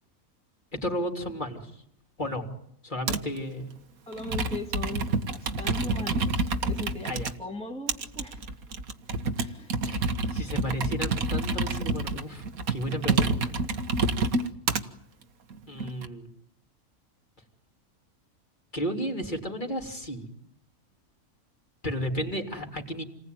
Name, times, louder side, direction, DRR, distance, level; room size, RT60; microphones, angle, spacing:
voice 1, 0.7-1.8 2.2-2.5 2.8-3.7 7.1-7.3 9.9-12.4 12.7-13.6 15.7-16.3 18.7-20.3 21.8-23.0, equal, 35° left, 2 dB, 3.4 m, -33 dB
Computer keyboard, 3.1-3.4 4.1-7.3 7.9-14.8 15.5-16.1, right 3 dB, 85° right, 1.9 m, -28 dB
voice 2, 4.1-8.6 9.4-9.7, left 3 dB, 5° left, 1 dB, 2.2 m, -39 dB
28.5 x 20.0 x 9.4 m, 0.75 s
omnidirectional pair, 1.5 m